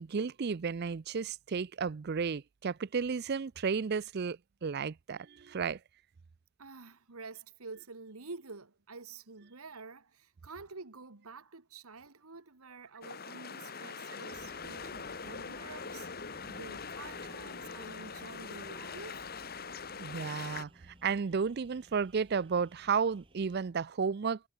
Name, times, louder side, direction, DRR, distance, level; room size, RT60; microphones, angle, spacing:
voice 1, 0.0-5.8 20.0-24.4, right 5 dB, 50° right, 0.4 m, -33 dB
voice 2, 6.6-16.1 16.5-19.2, right 4 dB, 85° right, 1.7 m, -48 dB
sound 1, 13.0-20.6, left 5 dB, 45° left, 2.0 m, -43 dB
sound 2, 14.3-23.6, right 1 dB, 25° right, 6.0 m, -58 dB
head